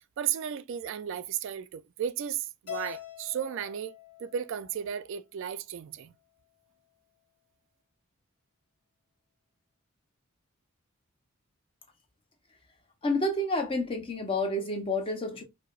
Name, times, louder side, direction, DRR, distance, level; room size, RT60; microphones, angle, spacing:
voice 1, 0.2-3.9 4.2-6.1, right 9 dB, 60° right, 0.3 m, -34 dB
Keyboard (musical), 2.7-5.0, left 13 dB, 50° left, 1.7 m, -44 dB
voice 2, 13.0-15.4, left 1 dB, 25° left, 0.7 m, -29 dB
4.6 x 2.1 x 2.3 m
head